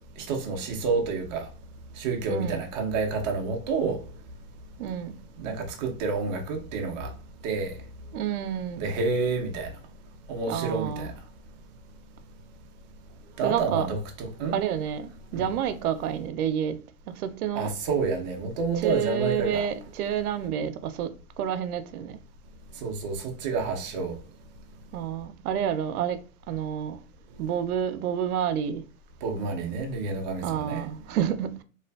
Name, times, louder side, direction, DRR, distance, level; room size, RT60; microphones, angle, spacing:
voice 1, 0.2-1.5 2.0-4.0 5.4-7.1 7.4-7.8 8.8-9.7 10.3-11.1 13.4-14.6 15.3-15.5 17.5-19.7 22.8-24.2 29.2-30.8, right 4 dB, 35° right, 0.4 m, -29 dB
voice 2, 2.3-2.6 4.8-5.1 8.1-8.8 10.5-11.1 13.4-13.9 14.5-16.8 17.1-17.7 18.8-21.1 21.4-22.1 24.9-26.2 26.5-27.0 27.4-28.8 30.4-31.6, right 9 dB, 80° right, 0.5 m, -29 dB
2.6 x 2.4 x 2.2 m
hypercardioid pair, 140°, 44 cm